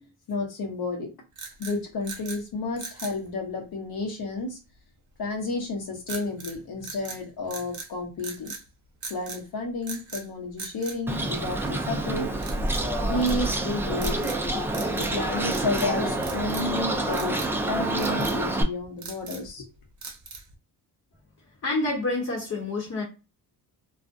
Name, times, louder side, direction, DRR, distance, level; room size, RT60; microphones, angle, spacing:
voice 1, 0.3-1.1 1.6-4.6 5.2-8.5 9.1-12.3 13.0-14.3 14.8-17.4 17.7-19.7, left 2 dB, 65° left, 2 dB, 1.0 m, -31 dB
sound 1, 1.3-2.4 2.8-3.2 6.1-6.6 6.8-7.9 8.2-8.6 9.0-9.4 9.8-10.3 10.6-11.8 12.4-12.9 13.2-13.6 14.0-14.4 14.7-15.2 15.4-15.9 16.2-16.8 17.1-17.5 18.0-18.4 18.8-19.5 20.0-20.5, right 4 dB, 45° right, 0.7 m, -40 dB
Bird, 11.1-18.6, right 2 dB, 5° right, 0.3 m, -27 dB
voice 2, 21.6-23.0, left 2 dB, 40° left, -1 dB, 0.9 m, -28 dB
2.4 x 2.1 x 2.5 m, 0.29 s
cardioid pair, 105°, 40 cm